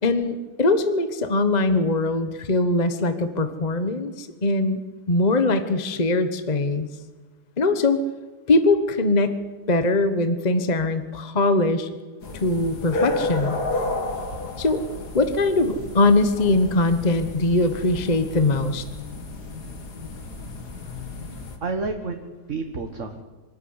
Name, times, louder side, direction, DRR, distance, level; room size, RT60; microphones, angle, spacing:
voice 1, 0.0-4.8 5.1-6.9 7.6-8.0 8.5-9.4 9.7-11.9 12.4-13.6 14.6-14.8 15.1-18.9, left 2 dB, 30° left, 9 dB, 1.2 m, -21 dB
sound 1, 12.2-21.6, left 2 dB, 75° left, 2.8 m, -32 dB
voice 2, 21.6-23.2, right 3 dB, 50° right, 5 dB, 1.8 m, -30 dB
25.0 x 13.5 x 9.7 m, 1.4 s
omnidirectional pair, 1.7 m